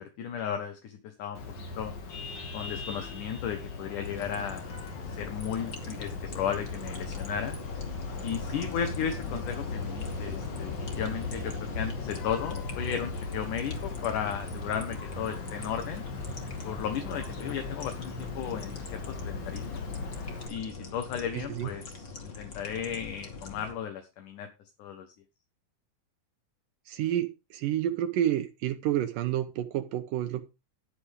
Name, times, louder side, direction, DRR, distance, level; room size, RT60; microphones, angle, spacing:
voice 1, 0.0-1.9 2.5-4.7 5.1-7.6 8.2-16.0 16.6-19.8 20.5-24.5 24.8-25.1, left 8 dB, 70° left, 7 dB, 2.8 m, -35 dB
Vehicle horn car horn honking, 1.4-20.5, left 3 dB, 85° left, 4.5 m, -39 dB
sound 1, 4.0-23.7, left 4 dB, 35° left, 3.0 m, -41 dB
voice 2, 21.3-21.7 26.9-30.4, right 11 dB, 80° right, 9 dB, 2.6 m, -29 dB
11.5 x 11.5 x 3.6 m, 0.26 s
omnidirectional pair, 3.9 m